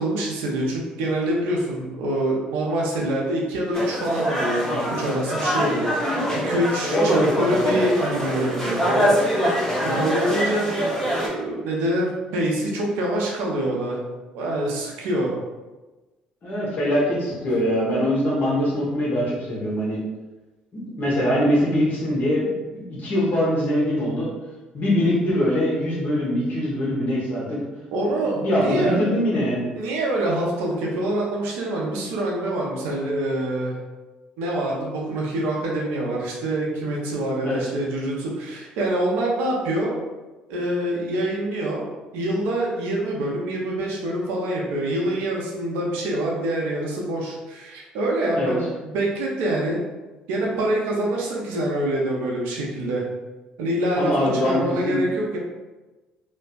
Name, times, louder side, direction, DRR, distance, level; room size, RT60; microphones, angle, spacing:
voice 1, 0.0-9.1 9.8-14.0 14.3-15.3 27.9-29.1 29.8-33.7 34.4-40.0 40.5-49.8 50.3-53.0 53.6-54.1 54.4-55.4, right 1 dB, 70° right, -2 dB, 0.6 m, -25 dB
sound 1, 3.7-11.3, equal, 15° left, 0.9 m, -24 dB
voice 2, 6.8-7.3 16.4-20.0 20.7-24.3 24.7-27.6 28.2-29.6 37.4-37.6 48.3-48.5 54.0-54.6 54.8-55.0, equal, 50° left, -6 dB, 0.9 m, -23 dB
2.6 x 2.1 x 2.4 m, 1.2 s
hypercardioid pair, 55°, 4 cm